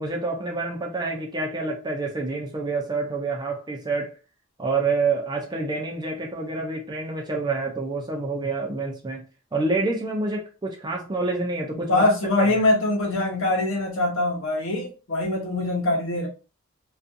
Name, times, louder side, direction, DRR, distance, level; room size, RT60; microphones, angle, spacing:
voice 1, 0.0-4.1 4.6-9.2 9.5-12.1 12.4-12.6, right 3 dB, 20° right, 0.4 m, -27 dB
voice 2, 11.9-16.3, left 2 dB, 60° left, 0.8 m, -23 dB
2.5 x 2.3 x 2.6 m
head